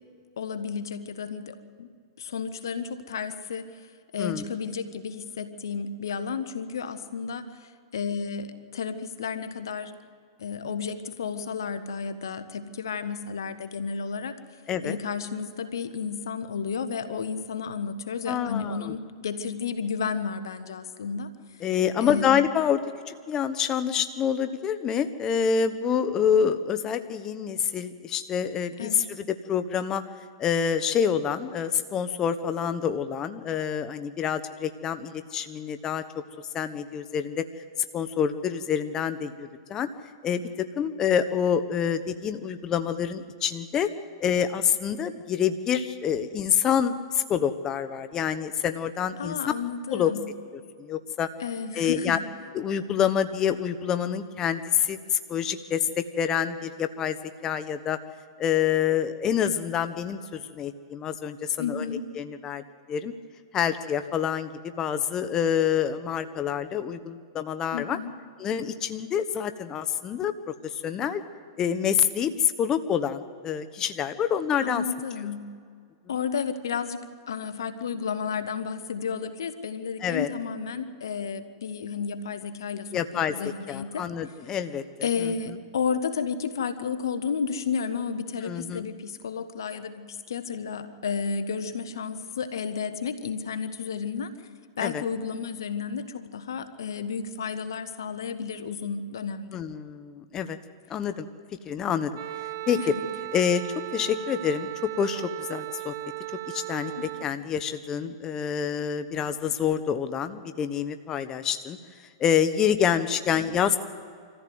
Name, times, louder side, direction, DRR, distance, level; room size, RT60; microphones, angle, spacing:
voice 1, 0.4-1.9 2.2-3.9 4.1-9.9 10.4-14.4 14.8-21.3 22.0-22.4 28.8-29.1 49.2-50.3 51.4-52.2 61.6-62.0 67.7-68.1 74.6-75.4 76.1-83.0 83.3-84.0 85.0-94.5 94.8-99.6 102.8-103.0 107.0-107.1 113.3-113.6, left 6 dB, 80° left, 10 dB, 1.3 m, -32 dB
voice 2, 18.3-18.9 21.6-22.8 23.1-30.0 30.4-36.0 36.5-37.4 37.9-39.9 40.2-43.9 44.2-49.4 49.9-50.1 50.8-51.3 51.8-52.2 52.5-57.2 57.4-58.0 58.4-61.8 62.2-62.6 62.9-63.1 63.5-68.0 68.4-71.2 71.6-74.8 80.0-80.3 82.9-84.8 88.4-88.9 94.8-95.0 99.5-100.6 100.9-101.3 101.6-102.1 102.7-102.8 103.3-103.6 103.9-105.9 106.5-111.8 112.2-113.8, left 8 dB, 30° left, 10 dB, 1.0 m, -27 dB
Wind instrument woodwind instrument, 102.1-107.3, right 18 dB, 60° right, 0.9 m, -36 dB
25.0 x 15.0 x 7.9 m, 2.1 s
hypercardioid pair, 115°, 2 cm